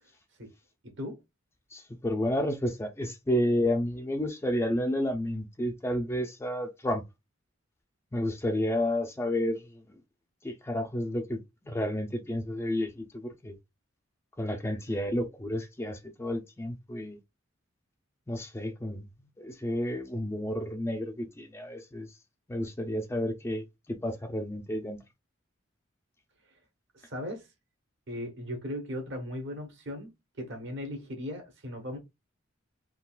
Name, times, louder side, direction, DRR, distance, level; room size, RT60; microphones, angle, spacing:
voice 1, 0.8-1.2 26.9-27.5 28.1-30.1 30.4-32.0, left 1 dB, 60° right, 1.0 m, -37 dB
voice 2, 1.7-7.0 8.1-9.8 10.4-11.4 11.7-13.5 14.4-17.2 18.3-19.1 19.4-22.1 22.5-25.0, left 1 dB, 15° left, 0.4 m, -31 dB
3.7 x 2.3 x 2.3 m
head